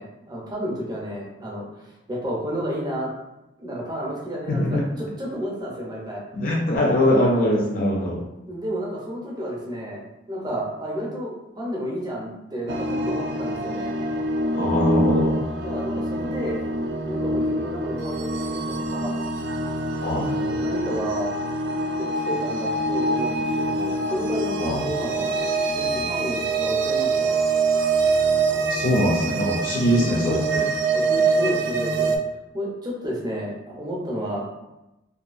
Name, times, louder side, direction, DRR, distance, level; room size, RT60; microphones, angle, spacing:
voice 1, 0.0-3.1 3.6-6.2 8.5-13.9 15.6-16.6 17.1-19.2 20.1-21.3 22.0-25.3 25.7-27.3 30.9-32.1 32.5-34.4, equal, 20° right, -4 dB, 0.6 m, -31 dB
voice 2, 4.5-4.8 6.3-8.2 14.5-15.4 20.0-20.3 24.6-24.8 28.4-30.7, left 1 dB, 50° left, -3 dB, 0.4 m, -22 dB
sound 1, 12.7-32.2, right 3 dB, 70° right, 0.3 m, -25 dB
2.6 x 2.3 x 2.4 m, 0.94 s
head